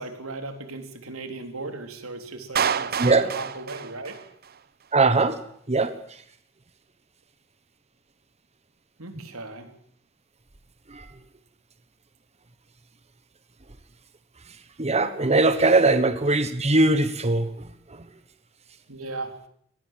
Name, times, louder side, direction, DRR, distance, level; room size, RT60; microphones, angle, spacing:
voice 1, 0.0-4.2 9.0-9.7 18.9-19.3, right 3 dB, 90° right, 6 dB, 3.8 m, -37 dB
Clapping, 2.6-4.6, right 7 dB, 50° right, 0.9 m, -28 dB
voice 2, 3.0-3.3 4.9-5.4 5.7-6.2 10.9-11.1 14.5-18.1, right 3 dB, 30° right, 10 dB, 1.2 m, -21 dB
24.5 x 19.0 x 7.6 m, 0.67 s
head